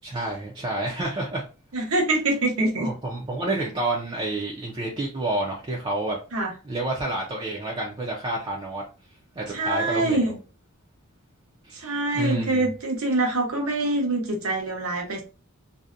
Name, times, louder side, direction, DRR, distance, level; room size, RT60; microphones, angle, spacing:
voice 1, 0.0-1.4 2.8-6.2 6.6-8.8 9.4-10.3 11.6-12.7, right 2 dB, 25° right, -3 dB, 0.4 m, -29 dB
voice 2, 1.7-2.9 6.3-6.5 9.5-10.4 11.7-15.2, right 2 dB, 80° right, 1 dB, 0.8 m, -25 dB
2.6 x 2.1 x 2.4 m, 0.34 s
head